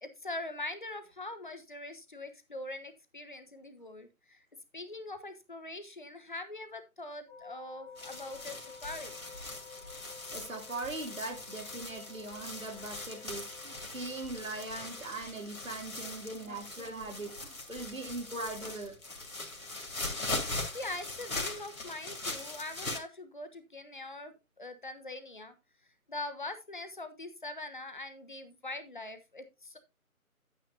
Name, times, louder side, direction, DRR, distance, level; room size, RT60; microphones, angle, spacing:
voice 1, 0.0-4.5 4.7-9.2 20.7-25.5 26.1-29.8, left 2 dB, 35° left, 0.9 m, -42 dB
sound 1, 7.3-15.2, left 5 dB, 15° right, 0.9 m, -52 dB
sound 2, 8.0-23.0, left 2 dB, 70° left, 2.4 m, -41 dB
voice 2, 10.3-18.9, right 2 dB, 65° right, 2.7 m, -40 dB
10.0 x 9.1 x 2.6 m
figure-of-eight pair, 155°, 43 cm